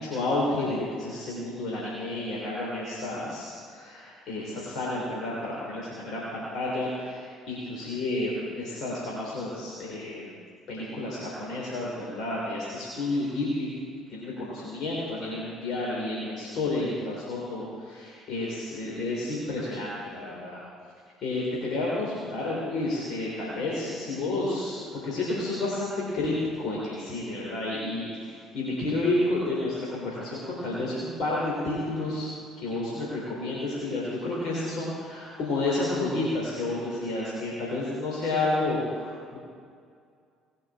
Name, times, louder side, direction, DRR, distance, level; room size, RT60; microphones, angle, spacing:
voice 1, 0.0-10.2 10.7-13.7 14.1-20.6 21.2-26.3 26.6-32.3 32.6-39.4, left 2 dB, 55° left, -6 dB, 3.3 m, -30 dB
19.0 x 6.4 x 6.2 m, 2.2 s
figure-of-eight pair, 55°, 0 cm